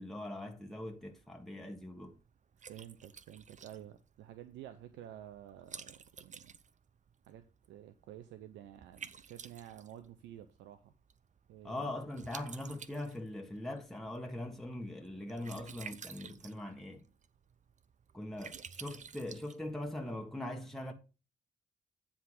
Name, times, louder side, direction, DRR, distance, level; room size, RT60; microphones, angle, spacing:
voice 1, 0.0-2.1 11.6-17.0 18.1-20.9, left 1 dB, ahead, 1.5 m, -41 dB
Liquid, 0.7-20.1, right 6 dB, 40° right, 0.7 m, -53 dB
voice 2, 2.6-6.5 7.3-10.9 11.5-12.0, right 11 dB, 75° right, 0.7 m, -51 dB
9.3 x 3.6 x 6.4 m
hypercardioid pair, 50°, 19 cm